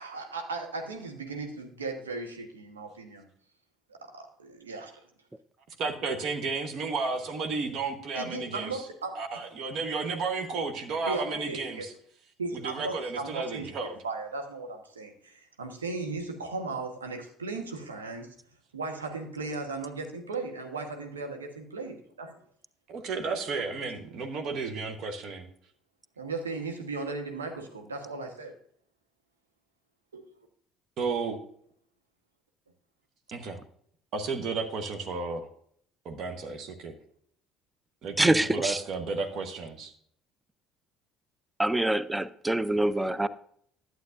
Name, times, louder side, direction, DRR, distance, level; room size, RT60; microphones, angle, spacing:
voice 1, 0.0-3.3 4.1-5.0 8.2-9.1 11.1-11.8 12.4-18.3 18.7-22.4 26.2-28.5, right 3 dB, 80° right, 3 dB, 1.1 m, -36 dB
voice 2, 5.8-8.9 9.1-11.9 12.5-14.0 22.9-25.5 31.0-31.4 33.3-33.6 34.1-35.5 36.0-36.9 38.0-39.9, right 4 dB, 50° right, 5 dB, 1.0 m, -33 dB
voice 3, 38.2-38.8 41.6-43.3, right 1 dB, 10° right, 16 dB, 0.4 m, -25 dB
11.5 x 7.8 x 2.5 m, 0.64 s
figure-of-eight pair, 55°, 0 cm